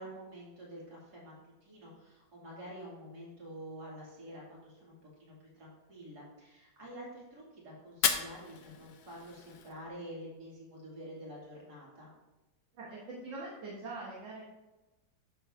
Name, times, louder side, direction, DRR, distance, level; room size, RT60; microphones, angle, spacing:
voice 1, 0.0-1.3 1.6-12.1, equal, 55° right, -6 dB, 3.5 m, -48 dB
Fire, 7.9-9.9, left 8 dB, 65° left, 1.1 m, -35 dB
voice 2, 12.7-14.4, right 2 dB, 70° right, -6 dB, 2.2 m, -43 dB
11.5 x 7.0 x 2.8 m, 1.1 s
omnidirectional pair, 2.1 m